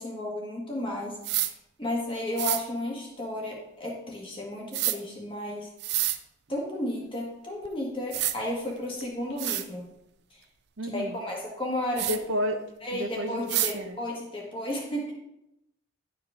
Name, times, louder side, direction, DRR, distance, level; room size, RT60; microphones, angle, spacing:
voice 1, 0.0-1.5 1.8-5.7 6.5-9.9 10.3-10.4 10.8-12.2 12.8-15.1, left 1 dB, 25° left, -2 dB, 1.8 m, -33 dB
sound 1, 1.2-1.5 2.4-2.6 4.7-5.0 5.8-6.2 7.6-7.7 8.1-8.4 9.0-9.1 9.4-9.7 12.0-12.2 13.5-13.7, right 14 dB, 55° right, 0.4 m, -27 dB
voice 2, 10.8-11.2 12.0-14.0, equal, 70° right, 6 dB, 0.8 m, -32 dB
11.0 x 4.8 x 3.7 m, 0.84 s
head